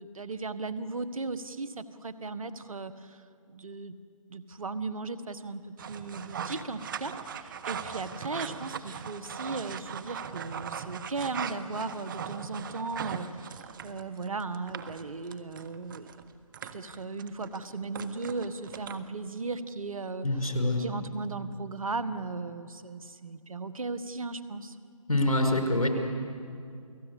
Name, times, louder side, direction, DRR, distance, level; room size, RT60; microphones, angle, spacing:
voice 1, 0.0-4.0 4.3-16.2 16.7-20.5 20.8-24.8, right 3 dB, 70° right, 12 dB, 1.5 m, -37 dB
sound 1, 5.8-19.3, right 7 dB, 35° right, 1.2 m, -40 dB
voice 2, 20.2-20.8 25.1-25.9, left 1 dB, 80° left, 4 dB, 5.6 m, -25 dB
29.5 x 18.0 x 8.4 m, 2.3 s
figure-of-eight pair, 150°, 18 cm